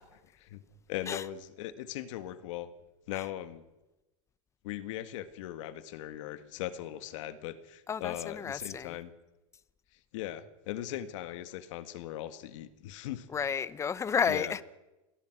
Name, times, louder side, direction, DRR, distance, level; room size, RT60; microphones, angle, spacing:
voice 1, 0.9-2.7 3.1-3.6 4.6-9.1 10.1-13.3 14.3-14.6, left 13 dB, 70° left, 1.9 m, -39 dB
voice 2, 7.9-9.0 13.3-14.6, left 6 dB, 15° left, 0.9 m, -31 dB
28.0 x 20.5 x 6.2 m
supercardioid pair, 140°, 17 cm